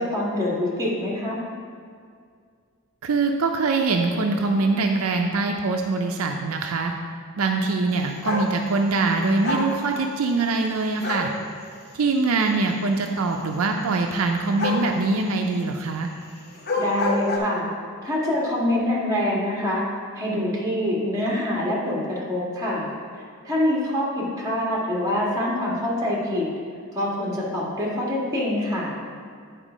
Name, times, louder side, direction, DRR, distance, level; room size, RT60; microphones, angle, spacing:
voice 1, 0.0-1.4 16.8-17.7 18.0-19.9 20.1-22.8 23.1-26.5 26.9-28.9, left 1 dB, 15° right, -5 dB, 1.7 m, -25 dB
voice 2, 3.0-6.9 7.4-11.3 11.9-16.1, right 3 dB, 70° right, 3 dB, 0.5 m, -23 dB
sound 1, 8.2-8.5 9.4-9.7 11.0-11.3 14.6-14.9 16.5-17.4, left 2 dB, 45° left, 0.9 m, -26 dB
9.1 x 4.4 x 5.0 m, 2.1 s
head